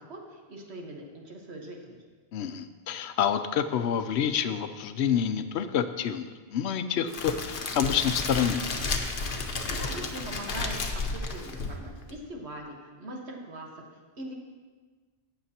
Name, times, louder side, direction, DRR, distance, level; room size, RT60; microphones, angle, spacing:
voice 1, 0.0-2.0 9.7-10.8 11.0-14.3, right 1 dB, 75° right, 0 dB, 1.6 m, -41 dB
voice 2, 2.3-8.6, left 8 dB, 80° left, 10 dB, 0.9 m, -28 dB
Crackle, 7.1-12.1, left 3 dB, 55° left, 1.0 m, -32 dB
18.0 x 6.6 x 2.8 m, 1.4 s
omnidirectional pair, 1.1 m